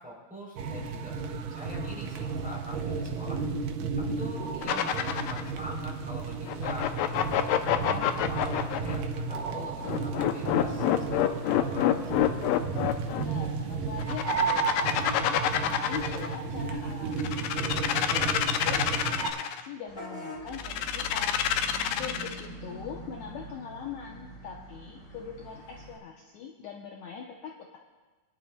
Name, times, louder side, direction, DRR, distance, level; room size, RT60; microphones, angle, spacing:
voice 1, 0.0-3.4 4.0-6.9 7.5-12.4 22.1-22.3, left 1 dB, ahead, -4 dB, 2.9 m, -44 dB
sound 1, 0.6-19.3, right 5 dB, 80° right, 2.4 m, -33 dB
sound 2, 4.6-5.5 6.5-9.0 9.8-13.2 14.0-16.4 17.1-19.6 20.5-22.5, left 11 dB, 85° left, 2.2 m, -27 dB
voice 2, 13.1-18.3 18.6-21.5 22.0-27.8, left 7 dB, 70° left, 0 dB, 1.9 m, -42 dB
Vehicle horn car horn honking / Bus, 19.9-26.0, right 1 dB, 25° left, 1.8 m, -43 dB
25.5 x 11.0 x 2.3 m, 1.3 s
omnidirectional pair, 3.9 m